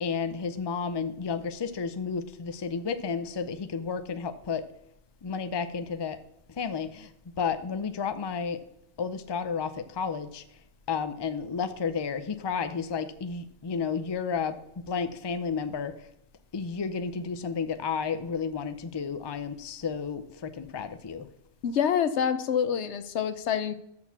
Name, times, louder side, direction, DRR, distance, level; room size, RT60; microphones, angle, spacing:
voice 1, 0.0-4.6 5.2-6.2 6.6-7.1 7.4-8.6 9.0-10.4 10.9-14.6 14.9-15.9 16.5-21.3, left 6 dB, 30° left, 10 dB, 0.5 m, -32 dB
voice 2, 21.6-23.8, left 8 dB, 85° left, 12 dB, 1.0 m, -26 dB
6.4 x 5.9 x 7.2 m, 0.77 s
omnidirectional pair, 1.1 m